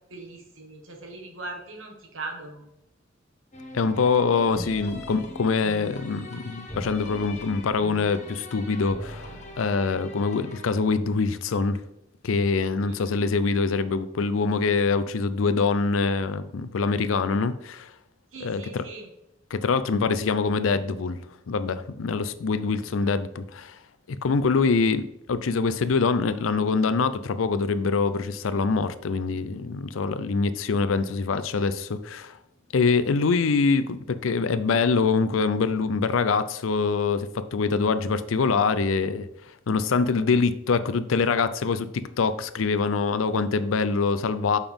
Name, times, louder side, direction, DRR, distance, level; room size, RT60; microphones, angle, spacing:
voice 1, 0.1-2.6 12.9-13.2 18.3-19.1 22.9-23.1, right 3 dB, 85° right, 1.5 m, -40 dB
sound 1, 3.5-10.7, left 1 dB, 35° left, 1.1 m, -40 dB
voice 2, 3.7-11.8 12.2-17.9 18.4-18.8 19.5-21.2 21.5-23.8 24.1-32.4 32.7-39.3 39.7-44.6, left 4 dB, 85° left, 0.5 m, -24 dB
7.0 x 5.5 x 3.5 m
head